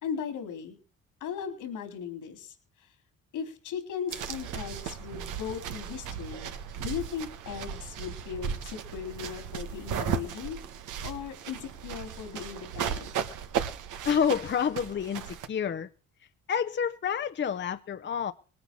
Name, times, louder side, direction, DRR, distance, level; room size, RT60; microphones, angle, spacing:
voice 1, 0.0-0.8 1.2-2.5 3.3-10.6 11.0-13.1, left 7 dB, 90° left, 7 dB, 4.2 m, -37 dB
sound 1, 4.1-15.5, right 8 dB, 85° right, 1.5 m, -36 dB
voice 2, 14.0-15.9 16.5-18.3, left 7 dB, 40° left, 8 dB, 0.8 m, -28 dB
20.0 x 9.5 x 6.3 m, 0.38 s
cardioid pair, 90°, 30 cm